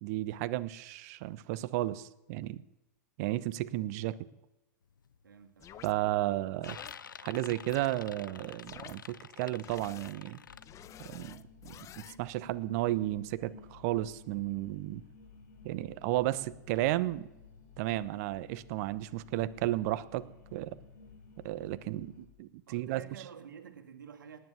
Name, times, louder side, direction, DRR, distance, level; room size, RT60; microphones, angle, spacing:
voice 1, 0.0-2.6 3.2-4.2 5.8-6.8 7.2-10.4 11.1-15.0 15.6-17.3 17.8-20.2 20.5-20.7 21.4-23.0, right 16 dB, 55° right, 16 dB, 1.0 m, -33 dB
sound 1, 4.9-5.2 5.6-6.1 6.4-10.6, left 7 dB, 90° left, 0.7 m, -49 dB
voice 2, 5.2-5.9 22.7-24.4, right 7 dB, 80° right, 6 dB, 2.4 m, -50 dB
sound 2, 5.6-5.9 6.6-6.9 7.7-7.9 8.6-8.9 9.6-10.1 10.6-12.2, left 11 dB, 30° left, 0.8 m, -50 dB
sound 3, 10.5-22.3, left 4 dB, 65° left, 4.3 m, -54 dB
18.5 x 10.0 x 7.1 m, 0.93 s
hypercardioid pair, 105°, 10 cm